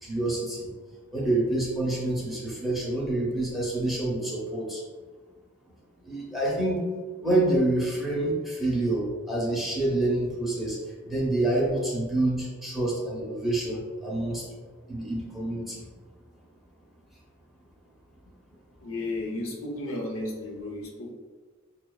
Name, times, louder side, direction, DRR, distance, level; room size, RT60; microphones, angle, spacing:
voice 1, 0.0-0.7 1.1-4.8 6.0-6.8 7.2-10.8 11.0-14.4 14.9-15.8, right 2 dB, ahead, -5 dB, 0.8 m, -27 dB
voice 2, 18.8-21.1, left 2 dB, 65° left, -1 dB, 0.6 m, -33 dB
5.7 x 2.2 x 2.3 m, 1.5 s
head